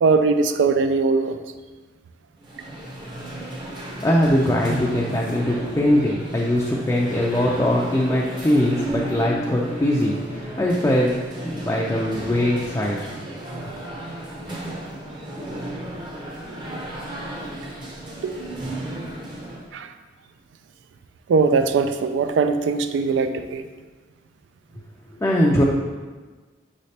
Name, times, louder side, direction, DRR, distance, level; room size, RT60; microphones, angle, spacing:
voice 1, 0.0-1.4 18.2-18.3 19.7-19.9 21.3-23.7, right 4 dB, 90° right, 9 dB, 0.3 m, -20 dB
sound 1, 2.4-19.7, right 1 dB, 25° right, 0.7 m, -34 dB
voice 2, 4.0-11.2 11.4-13.0 25.2-25.6, left 1 dB, 15° left, -3 dB, 0.4 m, -21 dB
5.8 x 3.2 x 2.7 m, 1.3 s
head